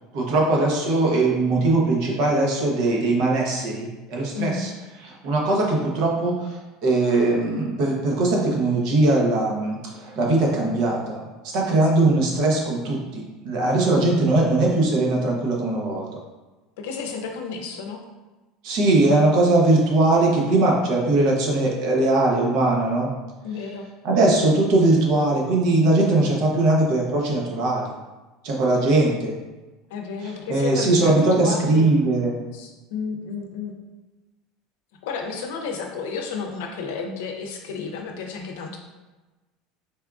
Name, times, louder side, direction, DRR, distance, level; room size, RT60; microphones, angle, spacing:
voice 1, 0.1-4.7 5.0-16.2 18.6-23.1 24.0-27.9 28.4-29.4 30.2-32.4, right 2 dB, 60° right, -2 dB, 0.8 m, -20 dB
voice 2, 4.3-4.7 11.7-11.8 13.8-14.0 16.8-18.0 23.4-23.9 29.9-32.0 32.5-33.7 35.0-38.8, left 5 dB, 85° left, 3 dB, 0.5 m, -32 dB
4.2 x 2.4 x 2.3 m, 1.2 s
cardioid pair, 150°, 0 cm